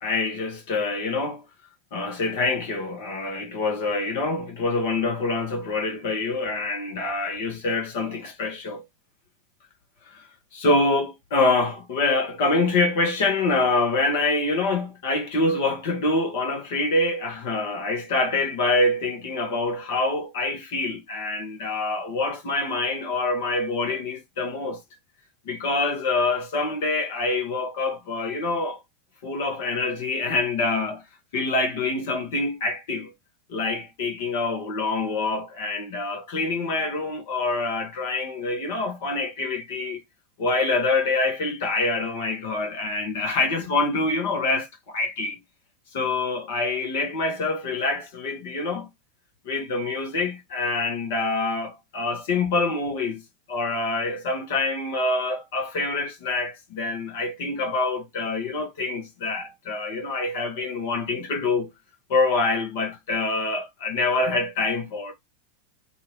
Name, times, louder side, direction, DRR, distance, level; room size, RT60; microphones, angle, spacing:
voice 1, 0.0-1.4 1.9-8.8 10.0-10.3 10.5-24.8 25.4-28.8 29.2-31.0 31.3-33.1 33.5-40.0 40.4-45.4 45.9-48.9 49.4-53.2 53.5-61.7 62.1-65.1, left 3 dB, 60° left, 1.2 m, -26 dB
2.7 x 2.7 x 3.1 m
figure-of-eight pair, 90°, 0 cm